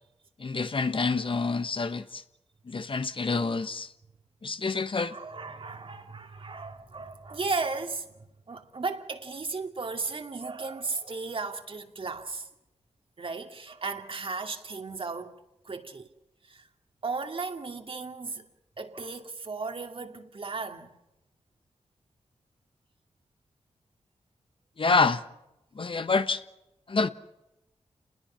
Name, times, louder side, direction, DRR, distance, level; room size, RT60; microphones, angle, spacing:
voice 1, 0.4-2.2 2.7-3.9 4.4-5.1 24.8-25.2 25.8-26.4 26.9-27.1, left 4 dB, 50° left, 1.3 m, -27 dB
voice 2, 5.1-12.5 13.2-15.3 15.6-16.1 16.4-16.7 17.0-18.4 18.8-20.9, right 4 dB, 55° right, 2.5 m, -35 dB
29.0 x 20.5 x 5.8 m
cardioid pair, 70°, 11 cm